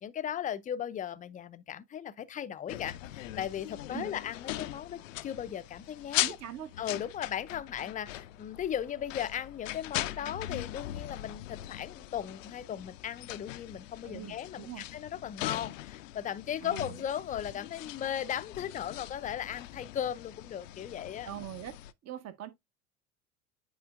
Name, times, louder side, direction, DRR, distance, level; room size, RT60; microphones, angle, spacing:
voice 1, 0.0-6.4 6.8-21.3, left 9 dB, 20° left, 0.5 m, -37 dB
sound 1, 2.7-21.9, left 14 dB, 75° left, 0.5 m, -40 dB
voice 2, 6.2-6.7 14.0-14.8 16.6-16.9 21.2-21.7 22.0-22.5, right 11 dB, 40° right, 1.3 m, -42 dB
9.2 x 4.3 x 2.4 m
hypercardioid pair, 75°, 39 cm